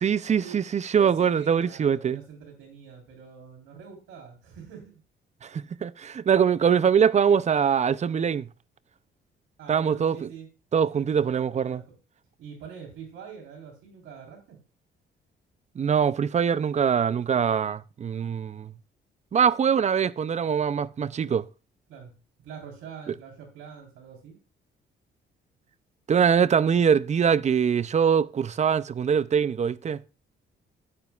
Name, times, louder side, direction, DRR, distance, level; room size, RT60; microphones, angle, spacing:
voice 1, 0.0-2.2 5.4-8.5 9.7-10.3 10.7-11.8 15.8-18.7 19.3-21.5 26.1-30.0, right 7 dB, 35° right, 0.5 m, -23 dB
voice 2, 0.9-5.0 9.6-10.5 10.9-11.8 12.4-14.6 21.9-22.1 22.4-24.4, right 6 dB, 85° right, 3.9 m, -44 dB
12.0 x 9.1 x 2.4 m
cardioid pair, 90°, 20 cm